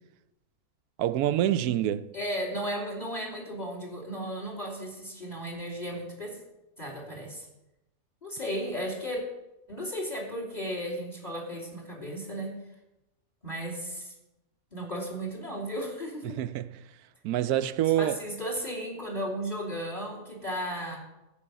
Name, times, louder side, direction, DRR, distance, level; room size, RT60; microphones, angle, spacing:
voice 1, 1.0-2.1 16.2-16.7 17.2-18.2, right 12 dB, 80° right, 1.1 m, -26 dB
voice 2, 2.1-6.4 6.8-7.5 8.2-9.2 9.7-12.5 13.4-14.1 14.7-16.4 18.0-21.0, equal, 25° left, 2.8 m, -35 dB
14.5 x 5.5 x 8.0 m
omnidirectional pair, 1.6 m